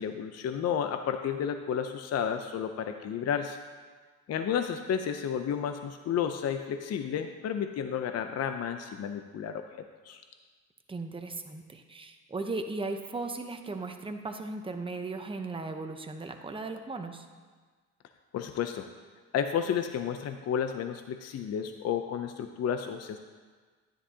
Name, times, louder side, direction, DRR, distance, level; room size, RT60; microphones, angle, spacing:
voice 1, 0.0-3.6 4.3-10.2 18.3-18.9 19.3-23.2, left 8 dB, 55° left, 7 dB, 0.6 m, -32 dB
voice 2, 10.9-17.3, right 3 dB, 15° right, 6 dB, 0.8 m, -37 dB
10.0 x 10.0 x 2.8 m, 1.5 s
cardioid pair, 90°, 30 cm